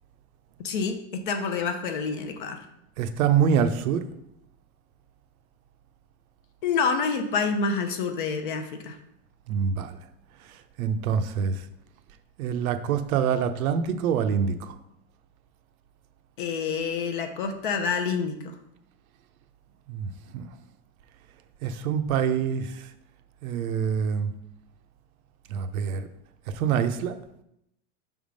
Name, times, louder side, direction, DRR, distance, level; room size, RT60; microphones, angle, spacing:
voice 1, 0.6-2.7 6.6-9.0 16.4-18.6, left 5 dB, 40° left, 6 dB, 0.5 m, -28 dB
voice 2, 3.0-4.0 9.5-9.9 10.8-11.6 12.4-14.7 19.9-20.5 21.6-22.7 23.4-24.3 25.5-26.1 26.6-27.2, right 7 dB, 75° right, 10 dB, 0.7 m, -25 dB
5.7 x 3.6 x 5.1 m, 0.78 s
supercardioid pair, 180°, 43 cm